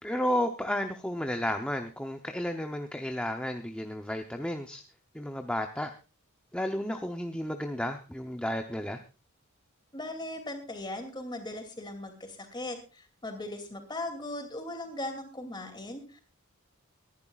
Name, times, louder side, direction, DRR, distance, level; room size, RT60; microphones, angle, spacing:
voice 1, 0.0-4.8 5.1-5.9 6.5-9.0, equal, 5° left, 5 dB, 0.7 m, -32 dB
voice 2, 9.9-16.2, left 1 dB, 20° left, 6 dB, 2.6 m, -38 dB
23.5 x 11.0 x 2.4 m, 0.34 s
head